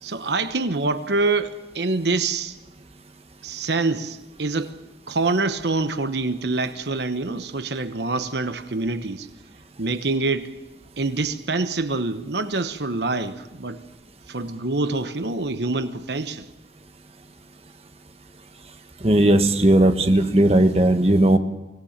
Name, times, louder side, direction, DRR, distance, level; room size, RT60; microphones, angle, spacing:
voice 1, 0.0-2.6 3.4-4.7 5.1-9.3 9.8-10.5 11.0-13.8 14.3-16.5, right 3 dB, 70° right, 10 dB, 1.1 m, -25 dB
voice 2, 19.0-21.4, right 1 dB, 35° right, 7 dB, 1.2 m, -17 dB
24.5 x 18.0 x 7.3 m, 1.1 s
head